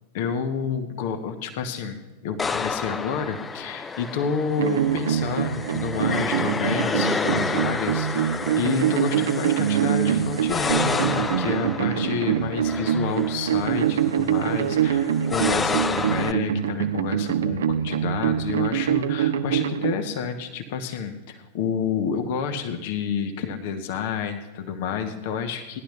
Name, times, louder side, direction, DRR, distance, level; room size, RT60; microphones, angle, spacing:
voice 1, 0.1-2.0 2.2-25.8, left 6 dB, 50° left, 5 dB, 1.2 m, -29 dB
sound 1, 2.4-16.3, left 5 dB, 15° left, 0.5 m, -30 dB
sound 2, 4.6-19.9, right 9 dB, 65° right, 0.7 m, -24 dB
18.5 x 11.5 x 3.3 m, 1.1 s
figure-of-eight pair, 90°, 0 cm